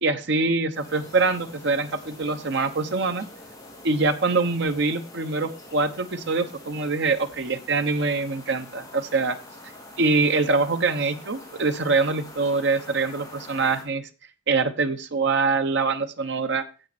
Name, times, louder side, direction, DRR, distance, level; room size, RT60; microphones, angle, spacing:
voice 1, 0.0-3.2 3.8-9.4 10.0-14.1 14.5-16.6, right 3 dB, 60° right, 8 dB, 1.0 m, -24 dB
sound 1, 0.7-13.8, left 1 dB, 20° left, 2.9 m, -45 dB
9.1 x 7.8 x 4.3 m, 0.34 s
head